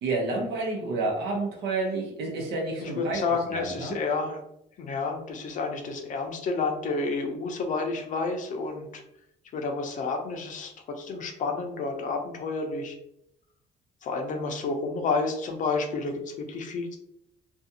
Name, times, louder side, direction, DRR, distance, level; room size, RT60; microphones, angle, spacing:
voice 1, 0.0-3.2 3.5-4.0, right 3 dB, 80° right, 0 dB, 0.9 m, -29 dB
voice 2, 2.8-4.4 4.8-9.0 9.5-13.0 14.0-17.0, left 4 dB, 50° left, 4 dB, 0.5 m, -30 dB
2.5 x 2.3 x 2.7 m, 0.79 s
cardioid pair, 110°, 17 cm